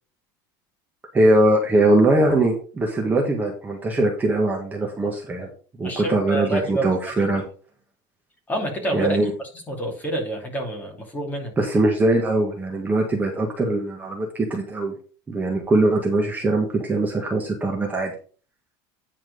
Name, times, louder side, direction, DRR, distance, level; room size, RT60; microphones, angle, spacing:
voice 1, 1.1-5.5 5.8-7.4 8.9-9.3 11.6-14.9 15.3-18.1, right 2 dB, 15° right, 0 dB, 1.7 m, -21 dB
voice 2, 5.8-6.9 8.5-9.2 9.7-11.5, right 1 dB, 15° left, 1 dB, 2.8 m, -27 dB
9.9 x 4.5 x 5.3 m, 0.39 s
cardioid pair, 145°, 11 cm